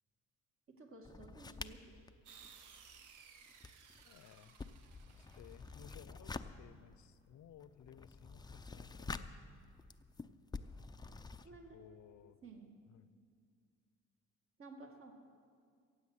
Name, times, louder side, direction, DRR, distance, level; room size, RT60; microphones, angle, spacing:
voice 1, 0.7-2.0 11.4-11.8 12.4-12.7 14.6-15.1, right 3 dB, 45° right, 2 dB, 2.3 m, -54 dB
sound 1, 1.0-3.2 3.5-11.5, left 3 dB, 15° left, 0.5 m, -49 dB
sound 2, 2.3-5.9, right 6 dB, 85° right, 1.1 m, -60 dB
voice 2, 4.0-4.6 5.1-9.3 11.4-12.4 12.9-13.1, left 10 dB, 70° left, 13 dB, 0.8 m, -59 dB
15.5 x 8.0 x 8.2 m, 2.1 s
cardioid pair, 90°, 30 cm